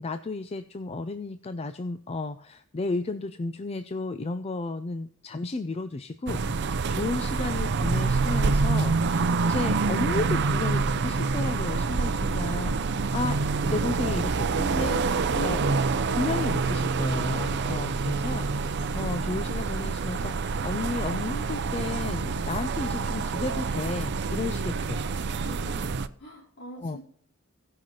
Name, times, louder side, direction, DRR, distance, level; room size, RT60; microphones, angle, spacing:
voice 1, 0.0-13.4 13.6-15.0 15.4-15.6 16.2-25.0 26.8-27.0, left 3 dB, 30° left, 10 dB, 0.4 m, -33 dB
sound 1, 6.3-26.1, right 4 dB, 55° right, 0.5 m, -27 dB
voice 2, 15.3-15.9 25.4-27.0, left 1 dB, 55° left, -3 dB, 4.4 m, -41 dB
17.5 x 5.8 x 3.0 m, 0.63 s
head